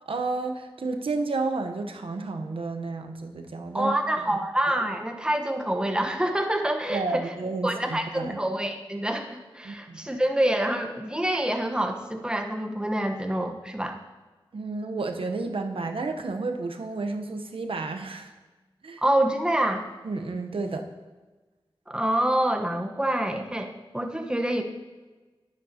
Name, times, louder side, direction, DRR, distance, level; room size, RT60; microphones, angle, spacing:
voice 1, 0.0-3.9 6.9-8.4 9.6-10.1 14.5-18.3 18.8-19.0 20.0-20.8, right 3 dB, 75° right, 5 dB, 0.8 m, -31 dB
voice 2, 3.7-7.3 7.6-14.0 19.0-19.8 21.9-24.6, right 1 dB, 10° right, 4 dB, 1.0 m, -26 dB
10.5 x 10.5 x 2.8 m, 1.3 s
wide cardioid pair, 55°, 9 cm